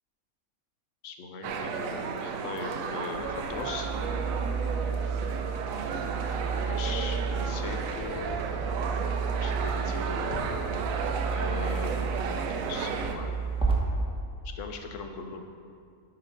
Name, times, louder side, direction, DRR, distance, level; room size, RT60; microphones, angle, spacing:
voice 1, 1.0-3.9 6.6-8.4 9.3-10.5 11.3-12.0 12.2-13.4 14.4-15.5, left 5 dB, 65° left, 5 dB, 0.9 m, -39 dB
sound 1, 1.4-13.2, right 5 dB, 70° right, 1.0 m, -33 dB
sound 2, 3.1-13.7, right 5 dB, 5° right, 0.8 m, -32 dB
8.7 x 4.0 x 5.0 m, 2.3 s
omnidirectional pair, 1.5 m